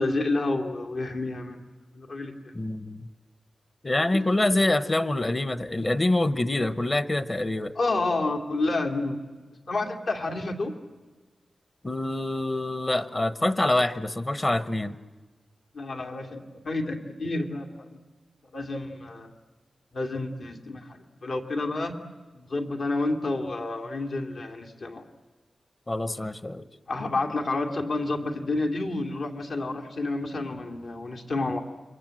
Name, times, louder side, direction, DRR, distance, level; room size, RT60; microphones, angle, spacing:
voice 1, 0.0-1.6 1.9-2.5 7.8-9.2 9.7-10.7 15.7-18.0 18.5-19.3 19.9-22.0 22.3-25.0 26.9-31.6, left 2 dB, 70° left, 2 dB, 2.7 m, -29 dB
voice 2, 2.5-3.1 3.8-7.7 11.8-15.0 25.9-26.6, left 2 dB, 25° left, 13 dB, 1.0 m, -26 dB
29.0 x 24.0 x 7.8 m, 1.3 s
wide cardioid pair, 120°, 0 cm